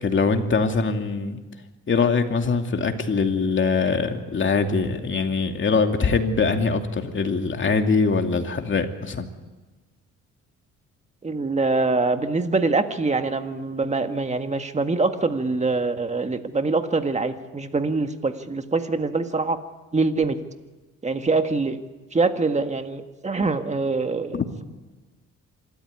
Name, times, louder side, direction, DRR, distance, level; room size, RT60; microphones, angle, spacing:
voice 1, 0.0-1.4 1.9-9.3 24.3-24.4, left 4 dB, 40° left, 5 dB, 2.6 m, -22 dB
voice 2, 11.2-19.6 19.9-20.4 21.0-21.8 22.1-24.6, right 3 dB, 25° right, 7 dB, 1.8 m, -24 dB
26.0 x 14.0 x 9.6 m, 1.2 s
cardioid pair, 90°, 30 cm